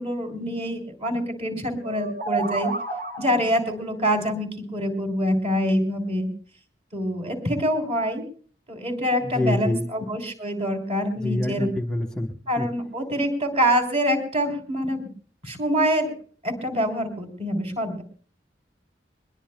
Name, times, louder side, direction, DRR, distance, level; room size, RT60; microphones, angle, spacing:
voice 1, 0.0-2.7 3.2-6.3 6.9-8.2 8.7-11.7 12.5-15.1 15.4-16.1 16.4-18.0, equal, 35° right, 5 dB, 3.7 m, -25 dB
sound 1, 1.8-3.7, right 3 dB, 55° right, 2.6 m, -30 dB
voice 2, 9.2-9.9 11.2-12.7, left 1 dB, 5° left, 3 dB, 1.0 m, -26 dB
22.5 x 21.0 x 2.2 m, 0.43 s
head